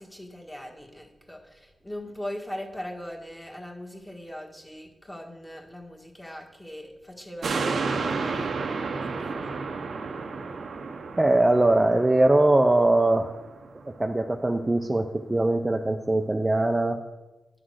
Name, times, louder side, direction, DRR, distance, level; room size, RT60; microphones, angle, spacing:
voice 1, 0.0-9.6, left 1 dB, 10° left, 0 dB, 1.5 m, -40 dB
sound 1, 7.4-14.1 14.5-14.6, right 4 dB, 70° right, 0.7 m, -32 dB
voice 2, 11.2-13.3 14.0-17.0, right 2 dB, 20° right, 4 dB, 0.5 m, -21 dB
9.9 x 3.9 x 6.4 m, 1.1 s
cardioid pair, 75°, 0 cm